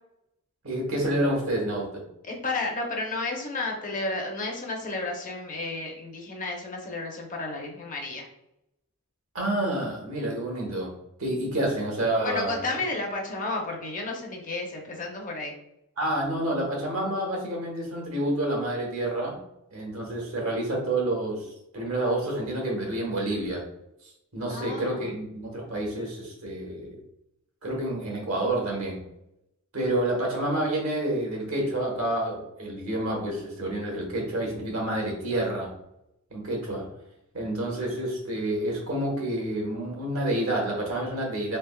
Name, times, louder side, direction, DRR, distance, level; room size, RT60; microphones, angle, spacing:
voice 1, 0.6-2.0 9.3-10.9 11.2-12.6 16.0-19.4 19.7-23.7 24.3-27.0 27.6-29.0 29.7-35.7 36.3-36.9 37.3-41.6, right 1 dB, 70° right, -1 dB, 1.2 m, -28 dB
voice 2, 2.3-8.3 12.2-15.5 24.5-25.1, left 2 dB, 35° left, 1 dB, 0.7 m, -32 dB
3.6 x 3.4 x 2.3 m, 0.83 s
head